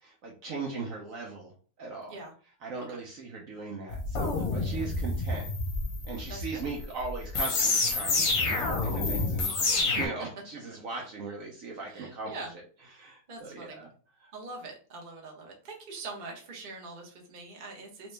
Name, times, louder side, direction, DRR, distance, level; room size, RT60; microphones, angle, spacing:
voice 1, 0.0-1.5 1.8-2.1 2.6-5.5 6.0-12.3 12.9-13.9 14.2-14.3, right 4 dB, 60° right, 0 dB, 1.0 m, -39 dB
sound 1, 3.9-10.1, left 3 dB, 50° left, 0.9 m, -28 dB
voice 2, 6.3-6.7 10.9-11.0 11.9-12.5 13.3-13.8 14.3-18.1, right 3 dB, 35° right, 0 dB, 0.8 m, -43 dB
3.1 x 3.0 x 3.2 m, 0.40 s
omnidirectional pair, 1.8 m